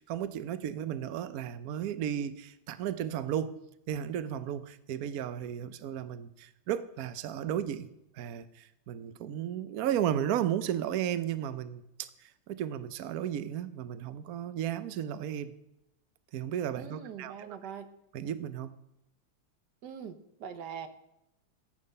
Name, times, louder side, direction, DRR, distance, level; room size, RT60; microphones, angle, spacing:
voice 1, 0.0-3.6 3.9-7.9 8.1-15.5 16.3-17.5 18.1-18.8, right 10 dB, 85° right, 13 dB, 0.8 m, -34 dB
voice 2, 16.8-17.9 19.8-20.9, right 7 dB, 55° right, 8 dB, 1.5 m, -42 dB
15.0 x 8.6 x 5.4 m, 0.84 s
omnidirectional pair, 2.4 m